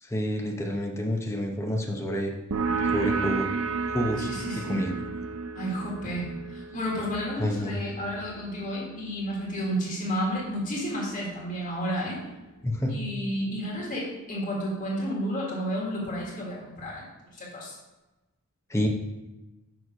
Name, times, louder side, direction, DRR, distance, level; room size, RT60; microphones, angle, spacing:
voice 1, 0.0-2.3 2.9-3.5 3.9-4.3 4.6-4.9 7.4-7.7 12.6-12.9 18.7-18.9, equal, 10° left, 1 dB, 0.7 m, -28 dB
sound 1, 2.5-9.8, right 4 dB, 65° right, 0.5 m, -32 dB
voice 2, 4.2-4.8 5.5-12.2 12.9-17.7, equal, 35° left, -4 dB, 1.6 m, -31 dB
6.1 x 3.2 x 5.4 m, 1.1 s
head